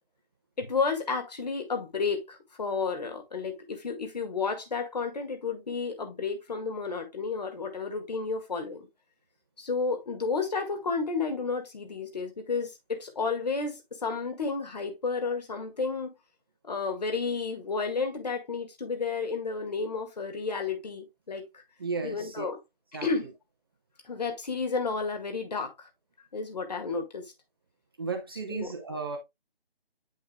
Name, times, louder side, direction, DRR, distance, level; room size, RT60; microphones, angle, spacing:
voice 1, 0.6-8.9 9.6-16.1 16.7-21.6 22.0-22.6 22.9-23.3 24.0-25.9 26.3-27.3 28.5-28.7, left 4 dB, 40° left, 2.1 m, -31 dB
voice 2, 21.8-22.5 22.9-23.1 28.0-29.2, right 4 dB, 25° right, 0.9 m, -34 dB
9.1 x 5.3 x 2.3 m
figure-of-eight pair, 160°, 30 cm